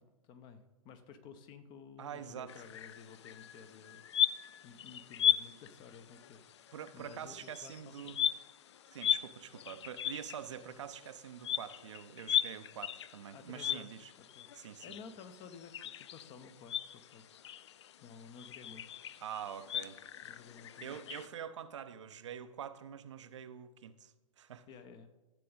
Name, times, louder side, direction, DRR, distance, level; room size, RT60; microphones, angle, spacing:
voice 1, 0.0-4.0 4.6-8.2 9.5-9.6 13.3-14.5 14.8-17.3 18.0-19.0 20.2-21.0 24.7-25.1, left 6 dB, 25° left, 9 dB, 0.8 m, -53 dB
voice 2, 2.0-2.5 6.7-8.3 8.9-14.1 14.5-15.0 19.2-20.0 20.8-24.6, right 9 dB, 55° right, 11 dB, 0.7 m, -45 dB
sound 1, 2.5-21.3, left 10 dB, 50° left, 0.4 m, -38 dB
13.5 x 7.5 x 4.0 m, 1.1 s
figure-of-eight pair, 110°, 19 cm